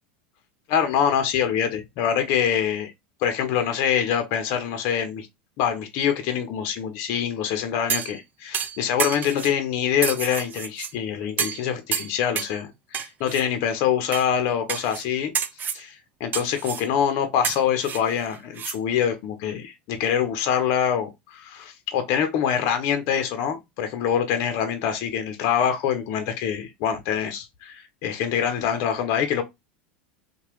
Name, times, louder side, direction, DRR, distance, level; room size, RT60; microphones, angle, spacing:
voice 1, 0.7-2.9 3.2-5.3 5.6-15.3 15.7-29.4, left 8 dB, 60° left, 0.6 m, -25 dB
sound 1, 7.9-8.2 8.5-9.6 10.0-10.9 11.4-11.6 11.9-12.6 12.9-13.4 14.1-14.3 14.7-15.0 15.3-15.8 16.3-16.9 17.4-18.8 19.1-19.2, right 8 dB, 35° right, 0.4 m, -29 dB
2.8 x 2.2 x 3.0 m
hypercardioid pair, 95°, 6 cm